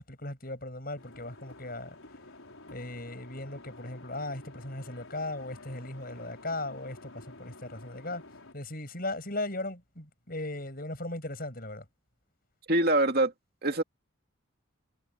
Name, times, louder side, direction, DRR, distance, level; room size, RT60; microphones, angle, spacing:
voice 1, 0.0-2.2 2.7-8.2 8.5-11.9, left 2 dB, 45° left, 7.7 m, -37 dB
sound 1, 1.0-8.5, left 2 dB, 80° left, 5.0 m, -50 dB
voice 2, 12.7-13.3 13.6-13.8, right 2 dB, 45° right, 2.6 m, -24 dB
head